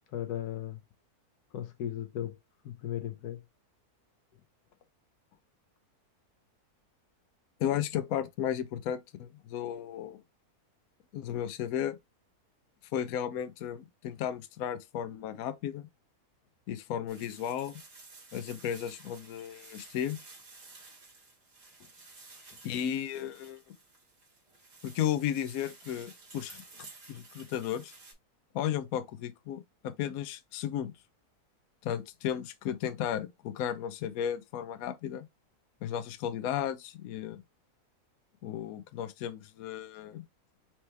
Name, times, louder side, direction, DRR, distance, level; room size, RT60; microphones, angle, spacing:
voice 1, 0.1-0.8 1.5-2.3 2.6-3.4, left 11 dB, 90° left, 1.3 m, -36 dB
voice 2, 7.6-10.2 11.1-12.0 12.9-15.9 16.7-17.8 18.3-20.2 22.6-23.6 24.8-27.9 28.5-30.9 31.8-35.3 35.8-37.4 38.4-40.2, left 10 dB, 70° left, 1.0 m, -34 dB
sound 1, 17.1-28.1, right 3 dB, 55° right, 2.0 m, -53 dB
4.5 x 3.0 x 3.3 m
omnidirectional pair, 1.6 m